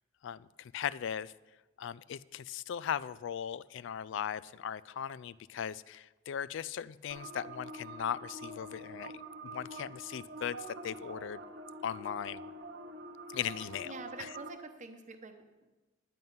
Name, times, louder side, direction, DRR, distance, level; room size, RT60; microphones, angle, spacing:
voice 1, 0.2-1.3 1.8-9.1 9.4-11.4 11.8-12.4 13.3-13.9, left 9 dB, 65° left, 19 dB, 0.3 m, -38 dB
sound 1, 7.1-14.5, right 2 dB, 65° right, 1.0 m, -46 dB
voice 2, 13.5-15.7, right 3 dB, 40° right, 6 dB, 0.9 m, -47 dB
11.0 x 9.3 x 5.5 m, 1.2 s
head